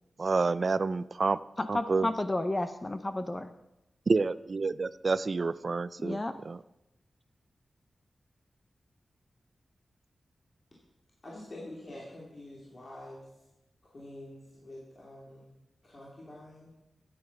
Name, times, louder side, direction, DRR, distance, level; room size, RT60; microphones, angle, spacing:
voice 1, 0.2-1.4 1.7-2.1 4.1-6.6, right 4 dB, 45° right, 16 dB, 0.4 m, -29 dB
voice 2, 1.6-3.5 6.0-6.3, left 1 dB, 20° left, 9 dB, 0.7 m, -32 dB
voice 3, 11.2-13.3 13.8-15.5 15.8-16.7, left 1 dB, 40° left, -4 dB, 2.9 m, -46 dB
12.5 x 8.8 x 6.0 m, 0.90 s
wide cardioid pair, 115°, 0 cm